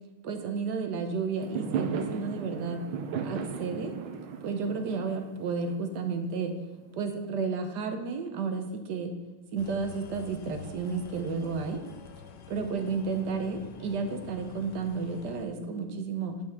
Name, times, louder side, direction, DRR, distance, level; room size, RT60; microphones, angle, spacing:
voice 1, 0.2-2.8 3.2-3.9 4.4-6.5 6.9-9.1 9.5-11.8 12.5-16.4, right 5 dB, 65° right, 6 dB, 1.2 m, -32 dB
Fireworks, 1.4-6.6, right 6 dB, 85° right, 1.5 m, -36 dB
sound 1, 9.6-15.5, left 8 dB, 70° left, 1.2 m, -47 dB
9.0 x 7.3 x 3.6 m, 1.2 s
omnidirectional pair, 2.2 m